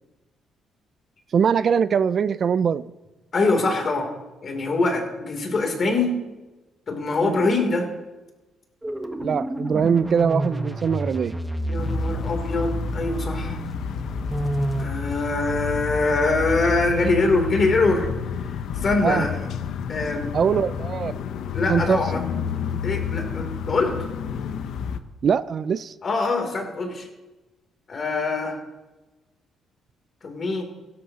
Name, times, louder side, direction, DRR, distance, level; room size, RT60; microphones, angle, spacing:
voice 1, 1.3-2.9 7.2-7.5 9.2-11.4 19.0-19.3 20.3-21.1 21.7-22.0 25.2-25.9, right 7 dB, 50° right, 16 dB, 0.4 m, -22 dB
voice 2, 3.3-4.1 4.4-6.1 6.9-7.9 11.7-13.6 14.8-18.1 18.4-19.5 19.9-20.3 21.5-22.2 22.8-24.0 26.0-27.1 27.9-28.6 30.2-30.6, left 3 dB, 45° left, 3 dB, 2.9 m, -23 dB
sound 1, 8.8-14.9, right 1 dB, 10° right, 1.1 m, -29 dB
sound 2, 11.8-25.0, left 7 dB, 75° left, 0.7 m, -30 dB
16.5 x 12.5 x 2.9 m, 1.1 s
cardioid pair, 90°, 0 cm